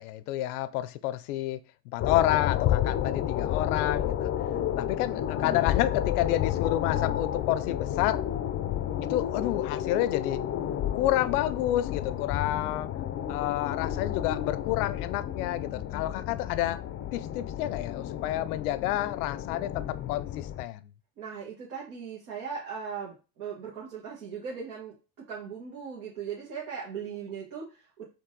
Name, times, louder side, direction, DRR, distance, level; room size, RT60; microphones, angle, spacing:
voice 1, 0.0-1.6 1.9-4.3 4.8-8.2 9.1-10.4 10.9-12.9 13.3-16.8 17.1-20.8, left 14 dB, 85° left, 0.6 m, -29 dB
sound 1, 2.0-20.6, left 11 dB, 30° left, 0.4 m, -31 dB
voice 2, 21.2-28.0, right 6 dB, 85° right, 1.5 m, -38 dB
4.6 x 2.7 x 3.9 m
supercardioid pair, 90°, 44 cm